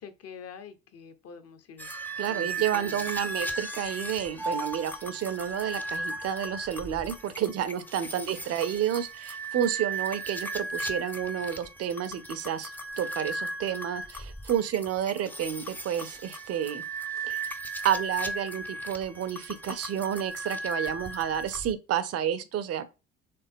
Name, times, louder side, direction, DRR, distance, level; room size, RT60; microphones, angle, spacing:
voice 1, 0.0-1.9 2.3-3.1 8.1-8.2, left 6 dB, 35° left, 0.8 m, -45 dB
sound 1, 1.8-21.7, right 2 dB, 5° left, 0.5 m, -36 dB
voice 2, 2.2-16.8 17.2-17.4 17.8-22.9, right 10 dB, 35° right, 0.6 m, -30 dB
4.2 x 3.3 x 3.6 m
figure-of-eight pair, 55°, 41 cm